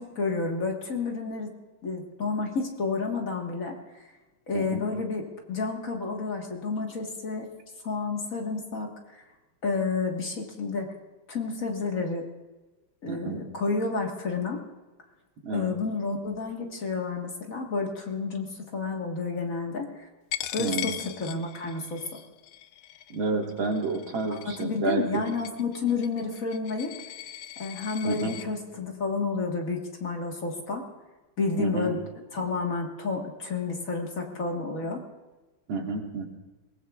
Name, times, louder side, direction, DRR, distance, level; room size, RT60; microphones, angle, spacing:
voice 1, 0.0-1.5 1.8-4.1 4.5-7.5 7.8-9.2 9.6-10.9 11.3-12.3 13.0-14.6 15.5-20.1 20.5-20.9 21.2-22.2 24.3-26.9 27.6-30.8 31.4-32.0 32.3-35.0, left 4 dB, 45° left, 1 dB, 1.9 m, -30 dB
voice 2, 13.1-13.4 15.4-15.7 20.6-21.0 23.1-25.2 28.1-28.4 31.6-31.9 35.7-36.3, right 3 dB, 85° right, 1 dB, 2.5 m, -30 dB
Coin (dropping), 20.3-28.5, left 13 dB, 85° left, 1.4 m, -39 dB
22.0 x 19.5 x 2.4 m, 1.1 s
omnidirectional pair, 2.1 m